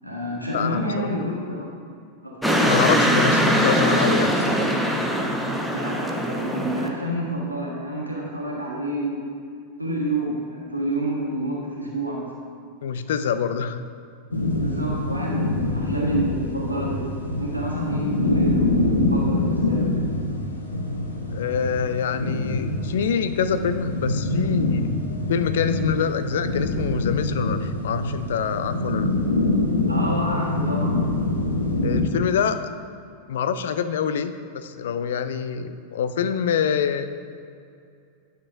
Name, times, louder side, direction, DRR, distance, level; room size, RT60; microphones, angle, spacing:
voice 1, 0.0-1.6 2.2-2.7 3.0-3.1 5.7-9.2 9.8-12.3 14.6-17.1 17.4-19.9 29.9-31.0, right 1 dB, 85° right, -3 dB, 1.5 m, -29 dB
voice 2, 0.5-1.1 2.6-4.5 12.8-13.8 21.3-24.9 25.3-29.1 31.8-32.6 33.3-37.1, left 7 dB, 60° left, 10 dB, 0.4 m, -25 dB
sound 1, 2.4-6.9, equal, ahead, 0.7 m, -21 dB
sound 2, 14.3-32.0, left 2 dB, 80° left, 0.9 m, -25 dB
10.5 x 6.7 x 2.6 m, 2.4 s
figure-of-eight pair, 90°, 0 cm